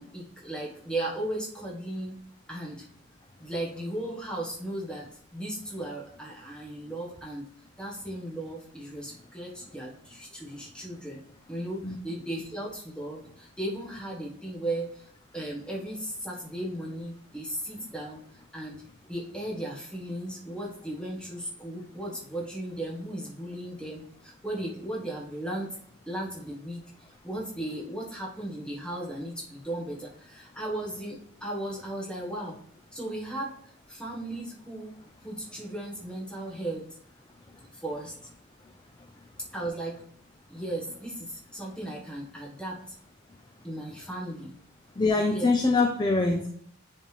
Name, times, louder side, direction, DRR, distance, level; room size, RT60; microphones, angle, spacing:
voice 1, 0.0-2.2 2.5-2.8 3.4-7.5 7.8-11.2 11.5-18.8 19.1-25.8 26.1-26.9 27.2-32.6 32.9-36.8 37.7-38.1 39.5-40.0 40.5-42.8 43.6-44.5 45.1-45.5, right 1 dB, 5° left, -4 dB, 1.3 m, -36 dB
voice 2, 45.0-46.5, left 3 dB, 20° left, 4 dB, 0.4 m, -24 dB
9.8 x 3.4 x 3.3 m, 0.65 s
head